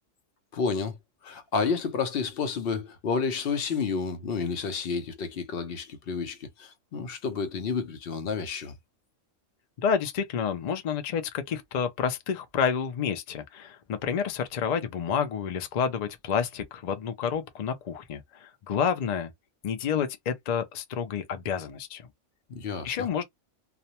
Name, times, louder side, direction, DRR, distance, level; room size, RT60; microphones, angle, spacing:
voice 1, 0.5-1.0 1.2-8.7 22.5-23.1, left 5 dB, 60° left, 0.7 m, -30 dB
voice 2, 9.8-19.3 19.6-22.1 22.8-23.2, left 7 dB, 80° left, 0.3 m, -29 dB
2.4 x 2.1 x 2.8 m
omnidirectional pair, 1.3 m